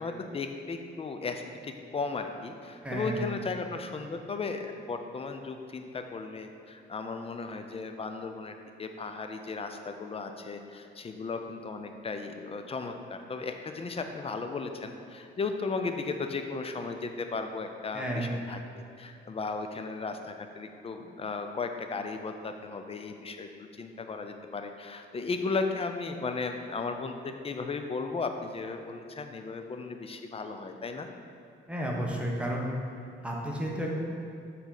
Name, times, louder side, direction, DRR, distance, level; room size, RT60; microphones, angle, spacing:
voice 1, 0.0-23.5 23.8-31.1, left 4 dB, 30° left, 6 dB, 0.5 m, -35 dB
voice 2, 2.8-3.2 17.9-18.3 31.7-32.7 33.2-33.9, right 1 dB, 5° right, -3 dB, 1.1 m, -32 dB
7.0 x 4.2 x 4.0 m, 2.7 s
cardioid pair, 90°, 20 cm